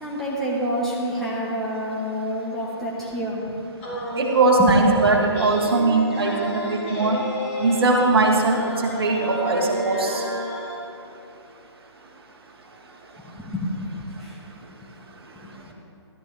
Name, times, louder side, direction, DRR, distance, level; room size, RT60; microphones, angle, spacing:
voice 1, 0.0-3.6 4.6-5.1 13.3-14.7 15.4-15.7, equal, ahead, -7 dB, 1.3 m, -28 dB
sound 1, 3.8-10.8, equal, 30° left, 3.0 m, -31 dB
voice 2, 4.1-7.2 7.6-10.2, right 3 dB, 55° right, 0 dB, 1.8 m, -20 dB
14.0 x 12.5 x 3.5 m, 2.7 s
figure-of-eight pair, 135°, 15 cm